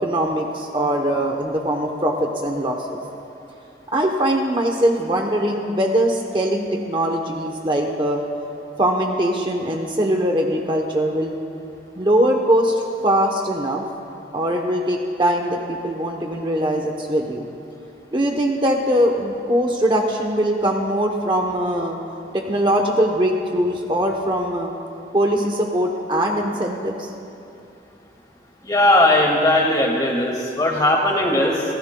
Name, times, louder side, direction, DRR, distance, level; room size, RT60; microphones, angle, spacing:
voice 1, 0.0-3.0 3.9-8.2 8.8-11.3 12.0-13.8 14.3-17.5 18.1-22.0 22.3-24.7 25.1-27.1, right 1 dB, 25° right, 2 dB, 0.8 m, -21 dB
voice 2, 28.6-31.6, left 1 dB, 20° left, -1 dB, 2.0 m, -18 dB
25.5 x 17.0 x 2.2 m, 2.7 s
head